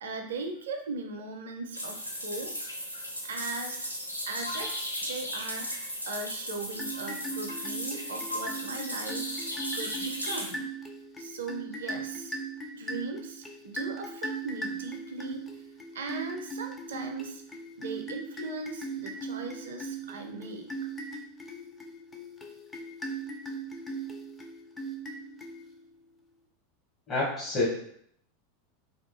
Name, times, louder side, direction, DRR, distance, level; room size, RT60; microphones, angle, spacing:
voice 1, 0.0-2.5 3.2-3.9 4.2-10.7 11.2-12.4 12.7-15.6 15.9-17.4 17.8-20.7, right 3 dB, 65° right, 5 dB, 0.4 m, -39 dB
sound 1, 1.7-10.5, equal, 90° left, 0.4 m, -36 dB
sound 2, 6.7-26.0, right 3 dB, 15° left, 0.4 m, -39 dB
voice 2, 27.1-27.7, left 2 dB, 30° left, -7 dB, 0.9 m, -27 dB
2.7 x 2.3 x 2.5 m, 0.67 s
figure-of-eight pair, 85°, 0 cm